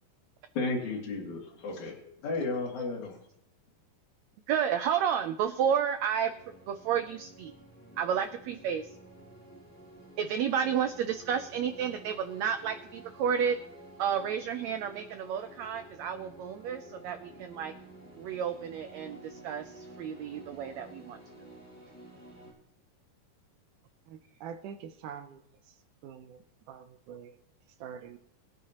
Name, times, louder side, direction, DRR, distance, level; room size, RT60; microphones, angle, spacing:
voice 1, 0.6-3.2, left 3 dB, 60° left, -3 dB, 3.5 m, -33 dB
voice 2, 4.5-6.3 6.7-7.5 8.0-8.9 10.2-13.6 14.0-17.7 18.2-21.2, right 8 dB, 90° right, 9 dB, 1.5 m, -31 dB
sound 1, 6.3-22.5, right 1 dB, 5° left, 4.6 m, -51 dB
voice 3, 24.4-25.4 26.0-26.4 26.7-27.3 27.8-28.2, right 8 dB, 75° right, 9 dB, 2.1 m, -44 dB
22.0 x 9.6 x 2.9 m, 0.81 s
omnidirectional pair, 3.9 m